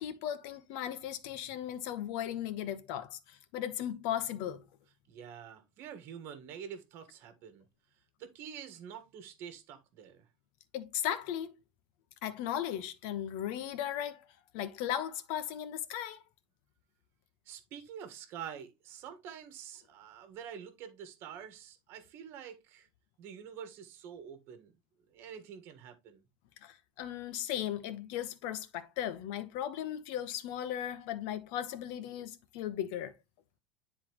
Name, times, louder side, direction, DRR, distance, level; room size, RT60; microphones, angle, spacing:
voice 1, 0.0-4.6 10.7-11.5 12.2-14.3 14.5-16.2 26.6-33.1, left 11 dB, 55° left, 1.1 m, -37 dB
voice 2, 5.1-7.7 8.2-10.2 17.4-22.9 23.2-24.7 25.1-26.2, right 8 dB, 40° right, 1.5 m, -47 dB
10.0 x 4.1 x 3.0 m
supercardioid pair, 165°, 6 cm